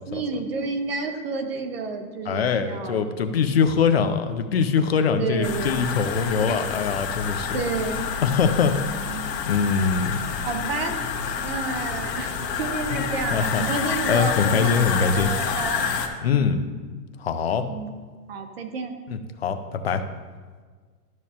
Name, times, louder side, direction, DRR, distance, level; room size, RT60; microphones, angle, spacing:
voice 1, 0.1-3.2 5.2-5.9 7.5-8.1 8.7-9.3 10.4-11.0 11.4-16.0 16.3-16.6 17.7-17.9 18.3-18.9, right 4 dB, 40° right, 6 dB, 0.7 m, -30 dB
voice 2, 2.3-7.6 8.2-9.2 9.5-10.2 12.9-13.0 13.3-15.3 16.2-16.6 17.2-17.6 19.1-20.0, left 6 dB, 40° left, 8 dB, 0.4 m, -23 dB
sound 1, 5.4-16.1, left 7 dB, 80° left, 1.3 m, -28 dB
12.5 x 6.1 x 2.8 m, 1.5 s
supercardioid pair, 175°, 48 cm